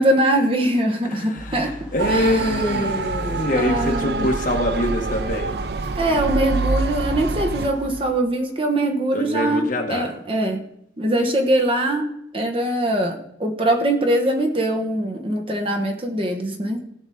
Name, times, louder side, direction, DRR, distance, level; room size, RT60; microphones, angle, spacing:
voice 1, 0.0-1.7 2.1-2.9 3.5-4.3 5.9-10.6 11.0-12.1 12.3-16.8, right 1 dB, 30° right, 3 dB, 1.1 m, -22 dB
voice 2, 1.0-5.6 9.1-10.2, left 1 dB, 45° left, 2 dB, 1.7 m, -24 dB
sound 1, 1.4-8.0, equal, 5° right, 1.9 m, -38 dB
Motor vehicle (road) / Siren, 2.0-7.7, right 3 dB, 65° right, 0.5 m, -25 dB
17.0 x 5.9 x 4.2 m, 0.76 s
head